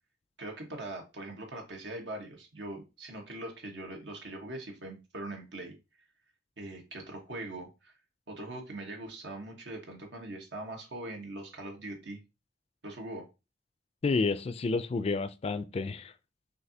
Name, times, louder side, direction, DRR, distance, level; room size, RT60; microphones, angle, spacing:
voice 1, 0.4-5.7 6.6-7.9 8.3-12.2 12.8-13.3, right 1 dB, 85° right, 1.2 m, -41 dB
voice 2, 14.0-16.1, left 3 dB, 35° left, 0.3 m, -30 dB
6.5 x 2.7 x 2.7 m
head